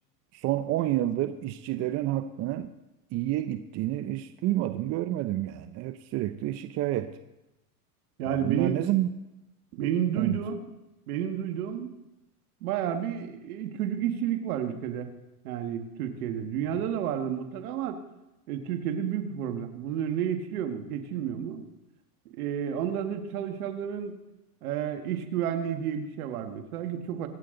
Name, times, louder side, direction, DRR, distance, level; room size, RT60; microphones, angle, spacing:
voice 1, 0.3-2.7 3.1-7.1 8.2-9.1 10.2-10.4, right 14 dB, 35° right, 11 dB, 0.6 m, -29 dB
voice 2, 8.2-8.8 9.7-10.5 11.1-11.9 12.6-15.1 15.4-18.0 18.5-21.7 22.4-24.2 24.6-27.3, right 9 dB, 70° right, 7 dB, 1.9 m, -31 dB
25.0 x 8.5 x 3.9 m, 0.96 s
supercardioid pair, 125°, 46 cm